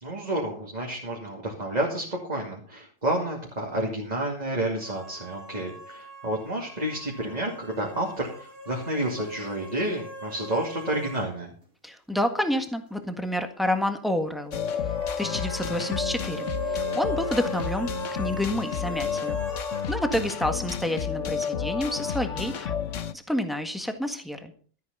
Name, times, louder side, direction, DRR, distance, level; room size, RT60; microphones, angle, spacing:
voice 1, 0.0-11.5, right 1 dB, 30° right, -2 dB, 2.6 m, -30 dB
sound 1, 4.8-11.3 11.6-11.7 14.8-19.9, equal, 65° right, 3.1 m, -39 dB
voice 2, 11.8-14.8 15.2-19.4 19.9-22.7 23.3-24.5, left 1 dB, ahead, 6 dB, 1.6 m, -29 dB
sound 2, 14.5-23.1, left 7 dB, 65° left, 1.2 m, -31 dB
13.0 x 9.4 x 5.5 m, 0.43 s
omnidirectional pair, 1.4 m